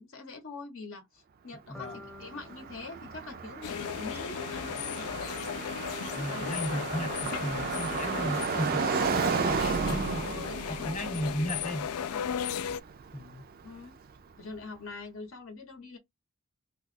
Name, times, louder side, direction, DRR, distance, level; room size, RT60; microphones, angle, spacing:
voice 1, 0.0-5.6 6.3-7.0 8.8-11.2 12.1-12.3 13.6-14.0 14.4-16.0, left 3 dB, 60° left, 0.8 m, -44 dB
voice 2, 1.7-2.0 6.1-8.9 9.9-10.3 10.7-11.9 13.1-13.4, equal, 35° left, 0.9 m, -35 dB
sound 1, 1.7-5.8, left 2 dB, 5° left, 0.7 m, -53 dB
Car passing by, 1.8-13.8, right 5 dB, 45° right, 0.4 m, -34 dB
sound 2, 3.6-12.8, left 9 dB, 75° left, 0.3 m, -36 dB
2.8 x 2.3 x 4.0 m
head